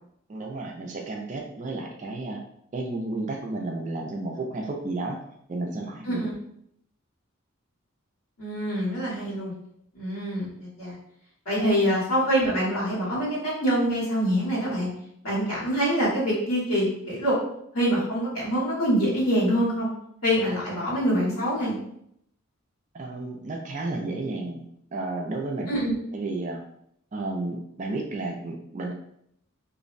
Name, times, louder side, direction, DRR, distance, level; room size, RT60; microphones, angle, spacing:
voice 1, 0.3-2.4 2.7-5.2 5.5-6.2 11.6-11.7 22.9-24.7 24.9-25.7 26.1-26.6 27.1-28.9, right 2 dB, 35° right, 1 dB, 0.4 m, -32 dB
voice 2, 8.4-9.5 9.9-11.0 11.4-14.9 15.2-17.3 17.7-19.9 20.2-21.8 25.7-26.0, equal, 90° left, -8 dB, 1.4 m, -25 dB
2.5 x 2.0 x 2.5 m, 0.71 s
head